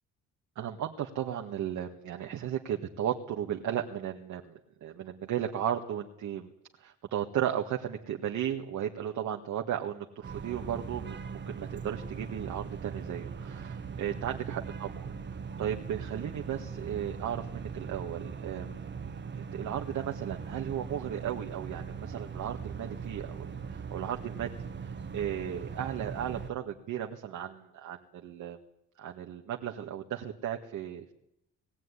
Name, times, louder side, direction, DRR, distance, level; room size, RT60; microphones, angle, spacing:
voice 1, 0.6-6.5 6.8-15.1 15.6-18.9 19.4-28.6 29.0-31.1, right 10 dB, 75° right, 2 dB, 1.8 m, -35 dB
sound 1, 10.2-26.5, right 6 dB, 35° right, 1.4 m, -40 dB
20.0 x 15.5 x 9.9 m, 0.80 s
cardioid pair, 90°, 30 cm